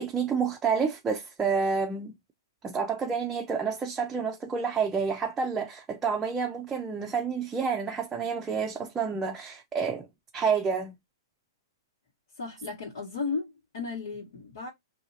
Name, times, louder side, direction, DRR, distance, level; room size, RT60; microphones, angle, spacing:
voice 1, 0.0-2.1 2.6-10.1 10.3-10.9, right 5 dB, 15° right, 0.4 m, -29 dB
voice 2, 12.4-14.7, left 4 dB, 80° left, 1.5 m, -35 dB
2.7 x 2.7 x 2.7 m
hypercardioid pair, 135°, 2 cm